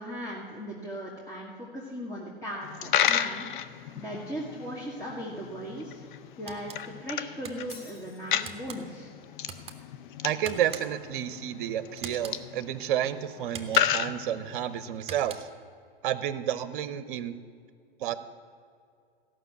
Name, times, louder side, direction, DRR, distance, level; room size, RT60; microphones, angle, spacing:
voice 1, 0.0-3.5 3.9-6.0 6.4-6.7 7.0-9.1, equal, 10° left, -3 dB, 1.7 m, -38 dB
Coin (dropping), 2.6-14.9, left 10 dB, 60° left, 0.6 m, -33 dB
sound 1, 6.5-6.8 7.4-7.8 8.4-8.8 9.4-9.8 10.4-11.1 12.0-12.4 13.5-14.1 15.0-15.6, right 6 dB, 20° right, 1.1 m, -42 dB
Shatter, 7.7-8.7, left 3 dB, 85° left, 3.6 m, -51 dB
voice 2, 10.2-15.5 16.0-17.4 18.0-18.2, right 10 dB, 60° right, 14 dB, 0.8 m, -30 dB
15.0 x 6.1 x 7.9 m, 2.3 s
figure-of-eight pair, 100°, 29 cm